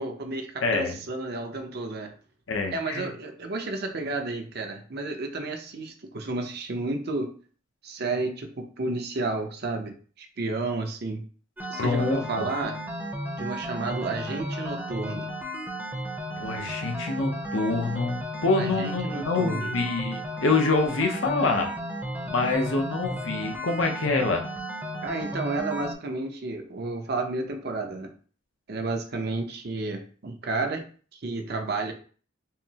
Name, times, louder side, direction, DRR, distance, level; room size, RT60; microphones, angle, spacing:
voice 1, 0.0-2.1 2.7-7.3 7.8-11.3 11.7-12.8 13.4-15.3 18.6-19.7 25.0-28.1 28.7-30.8 31.1-31.9, right 3 dB, 55° right, 4 dB, 0.7 m, -31 dB
voice 2, 0.6-1.0 2.5-3.1 11.8-12.5 16.4-21.7 22.2-24.4, left 3 dB, 80° left, 3 dB, 0.8 m, -26 dB
sound 1, 11.6-25.9, equal, 10° right, 0.6 m, -34 dB
5.6 x 2.1 x 2.8 m, 0.42 s
head